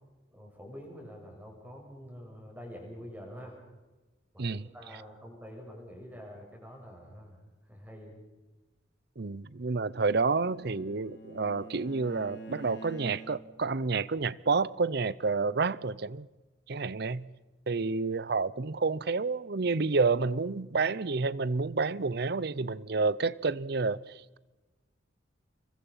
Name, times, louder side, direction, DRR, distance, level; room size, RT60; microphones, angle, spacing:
voice 1, 0.3-3.6 4.3-8.2, equal, 10° right, 7.4 m, -47 dB
voice 2, 9.2-16.3 16.7-17.3 17.7-24.4, right 4 dB, 60° right, 0.7 m, -29 dB
Bowed string instrument, 9.8-13.7, right 2 dB, 70° left, 3.9 m, -47 dB
28.0 x 23.5 x 5.7 m
head